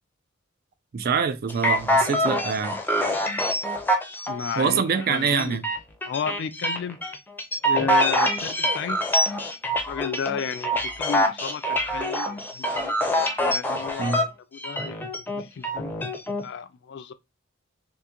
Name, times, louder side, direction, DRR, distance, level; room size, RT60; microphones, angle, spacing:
voice 1, 0.9-2.8 4.5-5.6 14.0-14.2, right 6 dB, 50° right, 0.4 m, -25 dB
sound 1, 1.5-14.2 14.6-16.4, equal, 10° left, 0.5 m, -25 dB
voice 2, 4.3-5.6 6.0-7.0 7.6-9.0 9.9-12.9 13.4-15.0 15.3-16.1 16.4-17.1, left 6 dB, 60° left, 0.4 m, -33 dB
3.6 x 2.5 x 2.8 m
head